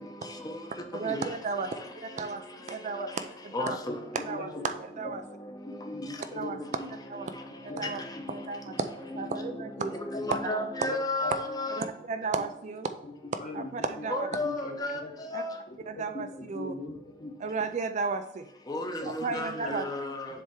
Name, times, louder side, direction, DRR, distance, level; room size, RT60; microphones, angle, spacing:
voice 1, 0.9-2.4 2.7-3.1 3.4-3.8 4.1-5.2 6.4-6.6 7.1-7.3 7.8-8.0 8.3-8.9 9.1-9.9 10.3-10.6 11.8-12.9 13.5-14.3 15.3-15.4 15.9-16.7 17.4-18.5 19.0-19.8, right 4 dB, 35° right, 0.3 m, -33 dB
voice 2, 3.5-4.0 4.5-4.6 9.1-9.5 9.9-11.8 14.1-15.0 15.3-15.5 18.7-20.3, left 2 dB, 20° left, 0.8 m, -33 dB
voice 3, 4.1-4.6 5.8-6.6 7.7-8.2 10.1-10.2 10.9-11.3 13.4-14.1 14.4-14.8 15.0-15.2 16.5-17.3 19.2-19.8, left 2 dB, 40° left, 1.2 m, -40 dB
7.4 x 3.5 x 4.5 m
head